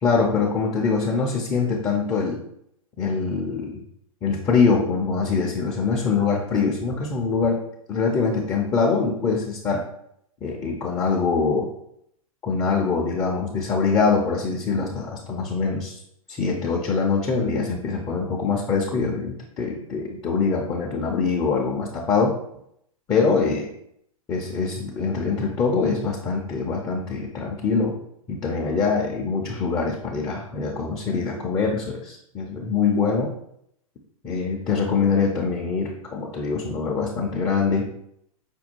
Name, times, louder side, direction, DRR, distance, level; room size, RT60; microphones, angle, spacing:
voice 1, 0.0-2.4 3.0-3.8 4.2-7.6 7.9-9.8 10.4-11.7 12.4-16.0 16.3-22.4 23.1-23.7 24.3-27.9 28.3-33.3 34.2-37.9, left 4 dB, 15° left, -2 dB, 0.5 m, -23 dB
5.2 x 2.3 x 4.4 m, 0.72 s
hypercardioid pair, 145°, 19 cm